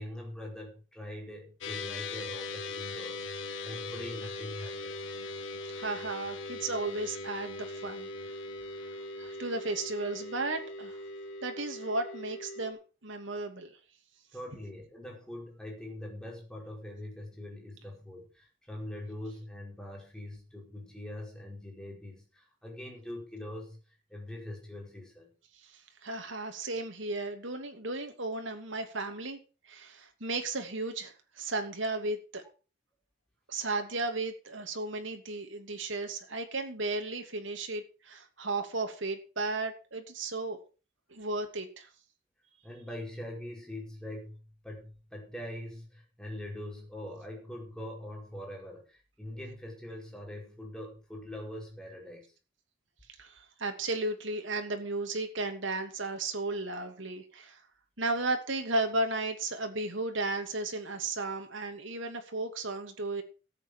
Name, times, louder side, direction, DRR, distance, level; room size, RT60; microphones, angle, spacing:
voice 1, 0.0-5.0 14.3-25.3 42.6-52.3, left 1 dB, 5° left, -1 dB, 5.2 m, -43 dB
sound 1, 1.6-12.7, left 2 dB, 85° left, 1.8 m, -40 dB
voice 2, 5.7-8.1 8.9-11.0 11.4-13.7 25.6-29.4 29.6-32.4 33.5-40.6 41.1-41.9 53.2-57.6 58.0-63.2, right 2 dB, 85° right, 5 dB, 2.7 m, -34 dB
14.0 x 8.3 x 6.4 m, 0.35 s
head